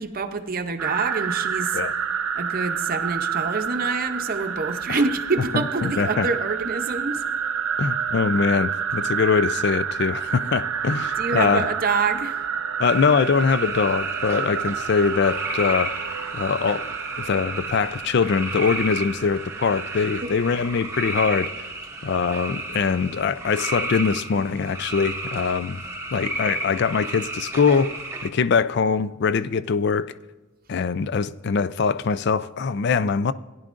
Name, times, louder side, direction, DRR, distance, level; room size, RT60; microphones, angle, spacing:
voice 1, 0.0-1.8 2.4-7.2 11.2-12.4, right 4 dB, 45° right, 0.7 m, -26 dB
sound 1, 0.8-20.2, right 7 dB, 80° right, 0.6 m, -29 dB
voice 2, 5.5-6.3 7.8-11.7 12.8-15.9 16.3-16.9 17.2-21.5 22.0-25.8 26.1-27.9 28.2-30.1 30.7-33.3, left 5 dB, 55° left, 0.4 m, -22 dB
sound 2, 12.8-28.3, right 2 dB, 15° right, 0.8 m, -33 dB
16.5 x 10.5 x 2.5 m
head